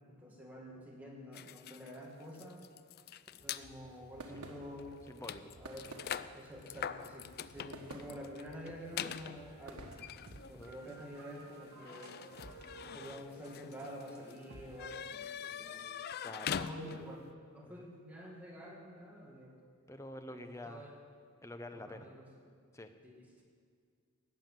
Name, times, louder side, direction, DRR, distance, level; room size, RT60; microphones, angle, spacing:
voice 1, 0.1-2.6 3.4-4.9 5.6-6.1 6.3-9.9 10.5-12.1 12.8-15.8 16.6-17.2 17.5-19.5 20.3-20.9 21.7-22.3 23.0-23.4, equal, 5° right, -3 dB, 1.9 m, -48 dB
sound 1, 1.3-3.7 4.4-4.5 4.8-17.2, left 8 dB, 45° left, 0.3 m, -44 dB
sound 2, 3.2-10.2, right 2 dB, 90° right, 1.4 m, -53 dB
voice 2, 5.1-5.4 10.5-11.0 16.2-16.6 17.6-17.8 19.9-20.9 21.4-22.1 22.7-22.9, left 1 dB, 15° left, 7 dB, 0.7 m, -47 dB
sound 3, 8.9-15.0, right 2 dB, 75° right, 1.3 m, -55 dB
13.5 x 7.1 x 9.1 m, 2.1 s
head